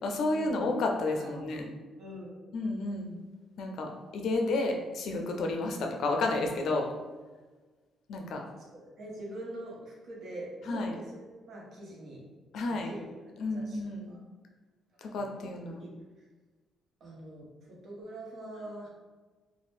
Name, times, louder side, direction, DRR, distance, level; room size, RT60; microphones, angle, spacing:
voice 1, 0.0-1.7 2.5-3.1 3.6-6.9 8.1-8.4 10.7-11.0 12.5-12.9 13.4-14.1 15.0-15.8, left 2 dB, 70° left, 2 dB, 0.4 m, -31 dB
voice 2, 0.9-1.3 2.0-2.5 8.5-12.2 12.7-13.1 13.4-13.8 14.1-14.2 15.1-15.5 15.8-15.9 16.2-16.3 17.0-18.9, right 1 dB, 60° right, -3 dB, 0.9 m, -44 dB
2.5 x 2.1 x 3.4 m, 1.3 s
cardioid pair, 90°, 0 cm